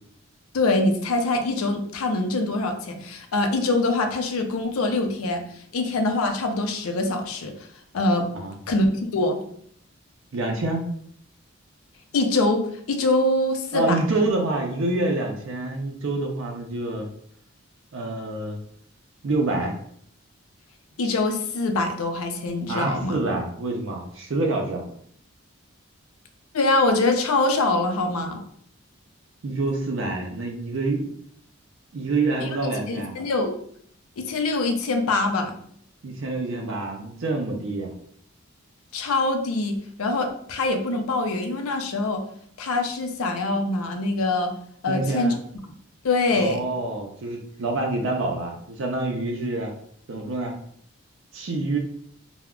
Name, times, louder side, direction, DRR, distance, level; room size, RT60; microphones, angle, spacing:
voice 1, 0.5-7.5 7.9-8.3 8.7-9.4 12.1-12.6 12.9-14.0 21.0-23.2 26.5-28.4 32.4-32.5 32.9-33.5 34.2-35.5 38.9-42.2 42.6-44.5 44.8-45.3 46.0-46.6, left 2 dB, 85° left, 5 dB, 0.5 m, -24 dB
voice 2, 10.3-10.8 13.7-17.1 17.9-18.6 19.2-19.8 22.7-24.8 29.4-31.1 31.9-33.2 36.0-37.9 44.9-45.4 46.3-49.7 50.1-50.5 51.3-51.8, right 2 dB, 60° right, 1 dB, 0.4 m, -27 dB
2.3 x 2.1 x 3.5 m, 0.63 s
head